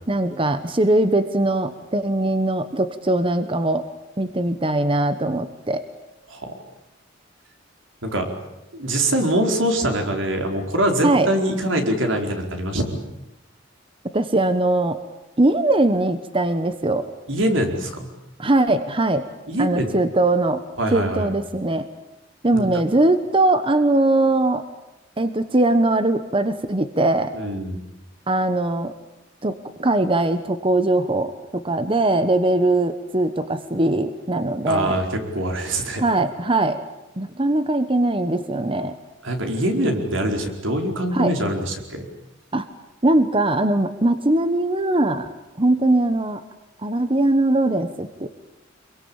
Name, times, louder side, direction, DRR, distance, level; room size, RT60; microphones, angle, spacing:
voice 1, 0.1-3.8 4.2-5.8 11.0-11.3 14.1-15.0 15.4-17.0 18.4-19.3 19.6-20.6 20.9-21.9 22.4-24.6 25.2-27.3 28.3-28.9 29.4-35.0 36.0-36.8 37.2-39.0 41.1-41.3 42.5-42.7 43.0-45.3 45.6-46.4 46.8-48.3, right 2 dB, 25° right, 10 dB, 1.1 m, -21 dB
voice 2, 8.7-13.0 17.3-18.1 19.5-19.9 20.8-21.3 22.6-22.8 27.3-27.8 34.6-35.1 35.3-36.0 39.2-42.1, right 1 dB, 80° right, 3 dB, 4.7 m, -23 dB
26.0 x 23.0 x 8.9 m, 0.92 s
head